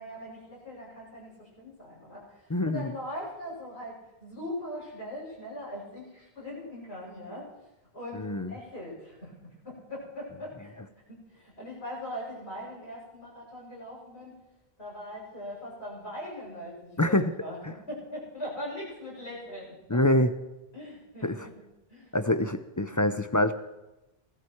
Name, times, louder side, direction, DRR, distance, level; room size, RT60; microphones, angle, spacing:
voice 1, 0.0-3.9 4.2-7.5 7.9-10.7 11.1-14.4 14.8-17.2 17.4-20.0 20.7-21.5 21.9-22.1, left 1 dB, 80° left, -6 dB, 7.5 m, -40 dB
voice 2, 2.5-2.9 8.1-8.5 17.0-17.3 19.9-20.3 21.2-21.5 22.1-23.5, left 1 dB, 20° left, 11 dB, 0.5 m, -25 dB
18.5 x 13.0 x 4.7 m, 0.98 s
omnidirectional pair, 1.1 m